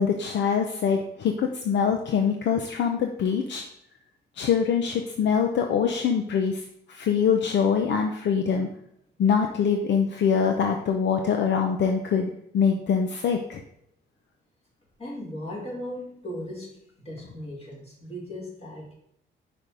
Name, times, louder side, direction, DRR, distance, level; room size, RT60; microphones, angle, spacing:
voice 1, 0.0-3.6 4.4-8.7 9.2-13.6, left 6 dB, 65° left, 4 dB, 0.7 m, -24 dB
voice 2, 15.0-16.8 17.0-18.9, equal, 30° left, -4 dB, 3.1 m, -37 dB
5.7 x 5.1 x 4.9 m, 0.74 s
cardioid pair, 90°, 20 cm